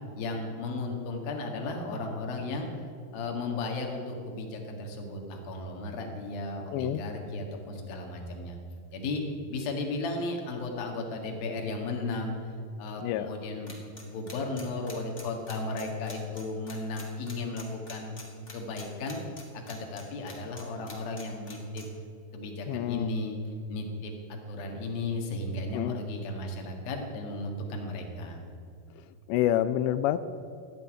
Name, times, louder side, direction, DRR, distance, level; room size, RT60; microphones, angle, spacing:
voice 1, 0.1-2.7 3.1-8.6 8.9-9.2 9.5-12.3 12.8-18.1 18.5-19.2 19.7-21.9 22.3-24.1 24.5-28.4, left 2 dB, 60° left, 2 dB, 3.1 m, -35 dB
voice 2, 6.7-7.0 13.0-13.3 22.7-23.1 25.7-26.0 29.3-30.2, left 12 dB, 90° left, 12 dB, 2.5 m, -27 dB
sound 1, 13.7-20.6 20.9-21.8, left 3 dB, 30° left, 1.2 m, -45 dB
16.0 x 7.1 x 9.8 m, 2.4 s
omnidirectional pair, 5.6 m